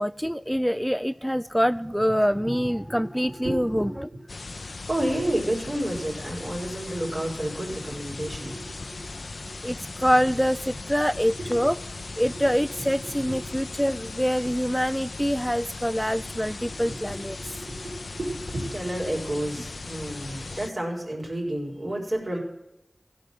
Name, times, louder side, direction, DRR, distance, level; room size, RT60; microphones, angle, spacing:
voice 1, 0.0-4.1 9.6-11.8 12.2-17.4, equal, ahead, 14 dB, 0.3 m, -25 dB
voice 2, 3.4-4.2 4.9-9.0 11.3-11.5 12.3-12.4 12.8-13.6 16.1-16.2 16.6-22.4, right 1 dB, 60° right, -2 dB, 4.5 m, -31 dB
sound 1, 4.3-20.7, left 3 dB, 80° left, 0.4 m, -38 dB
15.5 x 5.4 x 7.6 m, 0.89 s
wide cardioid pair, 45°, 0 cm